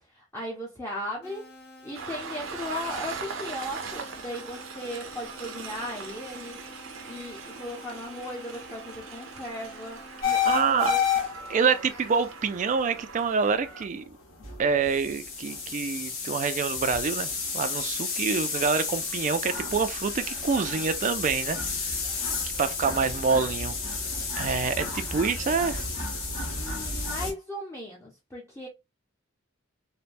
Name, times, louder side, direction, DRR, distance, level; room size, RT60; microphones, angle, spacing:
voice 1, 0.1-1.5 1.8-6.6 7.1-11.0 24.9-25.0 26.5-28.7, left 1 dB, 15° left, 0.6 m, -37 dB
sound 1, 1.2-10.2, left 2 dB, 50° left, 1.0 m, -49 dB
Train, 1.9-13.9, right 5 dB, 75° right, 0.6 m, -41 dB
sound 2, 10.2-27.3, left 5 dB, 85° left, 1.1 m, -31 dB
voice 2, 10.4-11.0 11.5-14.2 14.6-22.0 22.6-23.7 24.4-25.8, right 5 dB, 40° right, 0.3 m, -27 dB
3.2 x 2.1 x 2.5 m
head